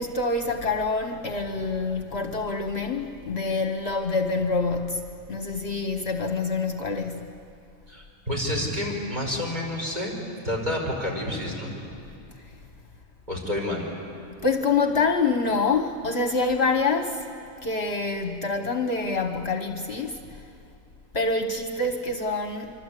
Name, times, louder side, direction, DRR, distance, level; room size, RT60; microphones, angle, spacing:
voice 1, 0.0-7.3 14.4-17.3 17.6-20.4 21.1-22.7, left 3 dB, 50° left, 1.3 m, -26 dB
voice 2, 7.9-10.1 10.4-11.8 13.3-13.9, left 1 dB, 30° right, 5.3 m, -29 dB
26.0 x 25.0 x 8.3 m
omnidirectional pair, 1.5 m